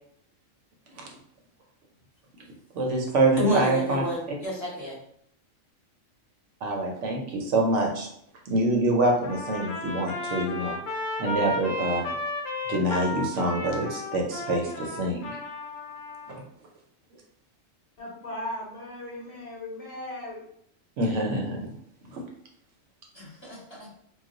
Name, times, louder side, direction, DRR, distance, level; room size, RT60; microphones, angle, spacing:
voice 1, 2.7-4.0 6.6-8.1 8.5-10.8 11.2-12.1 12.7-15.4 16.3-16.4 21.0-21.7 22.1-22.2, right 2 dB, 70° right, 1 dB, 0.9 m, -26 dB
voice 2, 3.4-5.0 23.1-24.0, equal, 25° left, -7 dB, 1.0 m, -29 dB
Trumpet, 9.2-16.3, left 2 dB, 75° left, 1.0 m, -33 dB
voice 3, 18.0-20.4, left 1 dB, 50° left, -4 dB, 0.9 m, -37 dB
2.3 x 2.2 x 3.7 m, 0.70 s
omnidirectional pair, 1.4 m